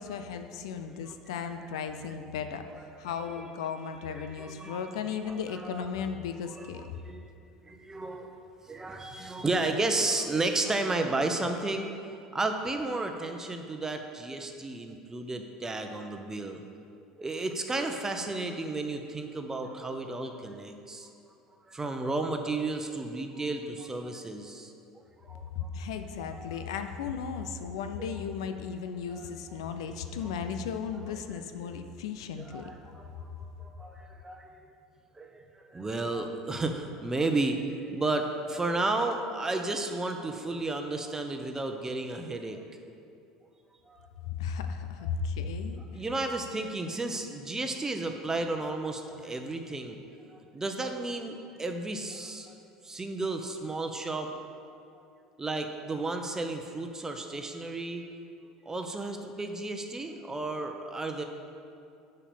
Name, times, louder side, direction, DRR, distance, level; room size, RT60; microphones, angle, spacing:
voice 1, 0.0-6.9 25.6-32.7 44.2-45.8, left 6 dB, 70° left, 8 dB, 0.5 m, -35 dB
voice 2, 0.9-1.5 3.4-3.5 4.1-4.9 5.3-5.9 6.6-6.7 7.1-7.3 7.6-8.3 8.6-11.9 12.3-16.6 17.2-21.1 21.7-24.7 25.2-25.7 26.2-26.6 29.1-29.3 30.2-30.3 32.4-34.6 35.2-42.8 43.9-44.1 45.9-50.0 50.3-52.6 52.8-54.4 54.7-54.8 55.4-58.0 58.6-61.2, right 2 dB, 15° right, 5 dB, 1.0 m, -33 dB
7.1 x 5.7 x 7.1 m, 2.5 s
hypercardioid pair, 70°, 3 cm